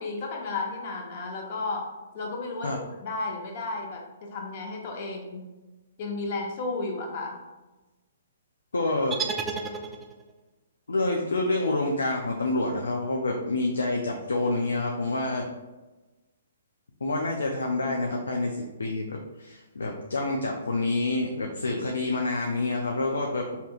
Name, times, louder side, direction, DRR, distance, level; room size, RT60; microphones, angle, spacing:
voice 1, 0.0-5.5 6.0-7.4, left 3 dB, 45° left, 1 dB, 0.7 m, -33 dB
voice 2, 8.7-9.2 10.9-15.5 17.0-23.6, left 2 dB, 85° left, 1 dB, 0.4 m, -27 dB
sound 1, 9.1-10.4, right 5 dB, 15° right, 0.3 m, -32 dB
3.4 x 2.8 x 2.4 m, 1.1 s
hypercardioid pair, 135°, 0 cm